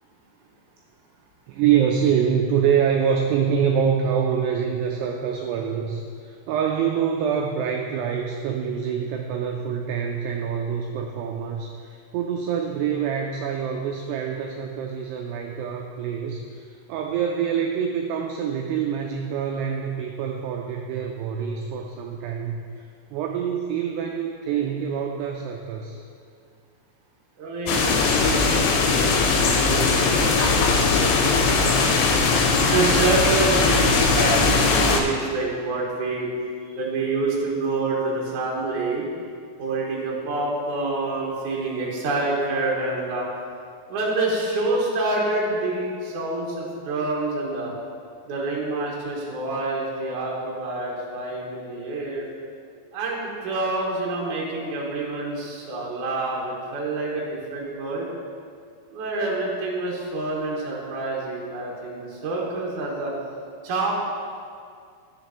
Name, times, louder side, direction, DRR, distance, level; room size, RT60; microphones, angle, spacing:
voice 1, 1.5-26.0, right 7 dB, 90° right, 2 dB, 2.3 m, -25 dB
voice 2, 27.4-31.8 32.6-36.3 36.7-39.1 39.6-43.3 43.9-47.7 48.2-52.3 52.9-58.1 58.9-63.1 63.6-63.9, right 2 dB, 60° right, -4 dB, 2.3 m, -27 dB
sound 1, 27.7-35.0, left 4 dB, 80° left, 3.1 m, -19 dB
13.0 x 6.7 x 3.0 m, 2.2 s
omnidirectional pair, 5.3 m